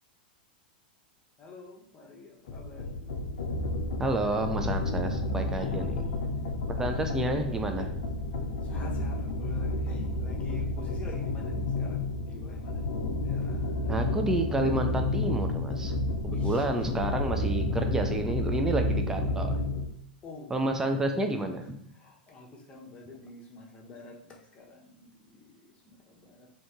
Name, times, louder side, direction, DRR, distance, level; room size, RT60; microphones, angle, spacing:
voice 1, 1.4-2.9 5.5-6.5 7.7-7.9 8.6-12.8 13.2-14.0 16.2-17.5 20.2-20.5 21.9-26.5, left 2 dB, 25° left, -2 dB, 0.8 m, -48 dB
sound 1, 2.5-19.9, left 2 dB, 65° left, 0.4 m, -31 dB
voice 2, 4.0-6.0 6.7-7.8 13.9-15.9 16.2-19.6 20.5-21.8, right 2 dB, 10° right, 5 dB, 0.4 m, -30 dB
2.8 x 2.5 x 3.4 m, 0.72 s
hypercardioid pair, 100°, 5 cm